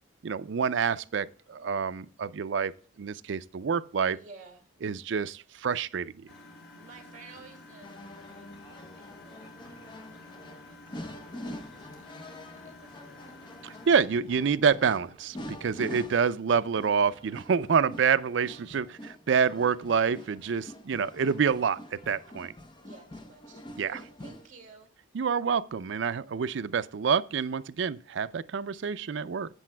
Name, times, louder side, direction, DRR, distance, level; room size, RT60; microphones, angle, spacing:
voice 1, 0.2-2.7 3.0-4.2 4.8-6.3 13.6-22.5 23.8-24.0 25.1-29.5, right 6 dB, 65° right, 0.4 m, -27 dB
voice 2, 4.1-4.7 6.8-13.9 22.8-24.9, right 4 dB, 40° right, 2.3 m, -54 dB
Engine, 6.3-14.0, left 2 dB, 85° left, 4.7 m, -50 dB
sound 1, 7.8-24.5, left 1 dB, 25° left, 0.7 m, -46 dB
13.5 x 8.4 x 2.2 m
head